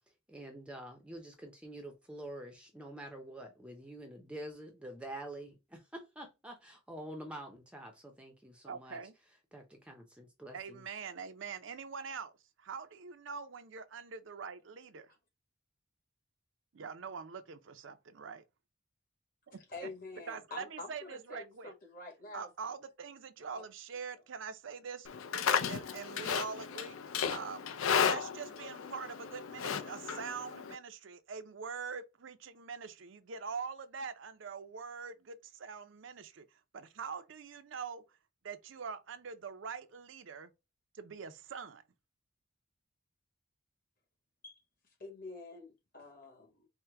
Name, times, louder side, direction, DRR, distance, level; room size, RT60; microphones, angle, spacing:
voice 1, 0.3-9.0 9.5-10.8, right 1 dB, 5° right, 0.5 m, -47 dB
voice 2, 8.6-9.1 10.5-12.3 12.6-15.1 16.7-18.4 19.8-19.9 20.3-21.7 22.3-25.1 25.4-27.0 27.3-27.7 28.0-36.5 36.7-38.0 38.4-40.5 40.9-41.8, right 5 dB, 65° right, 0.5 m, -44 dB
voice 3, 19.7-22.5 23.5-23.6 44.4-44.6 45.0-46.7, left 3 dB, 45° left, 1.4 m, -47 dB
Livestock farm animals working animals, 25.1-30.7, left 7 dB, 80° left, 0.5 m, -34 dB
4.5 x 2.1 x 3.4 m
head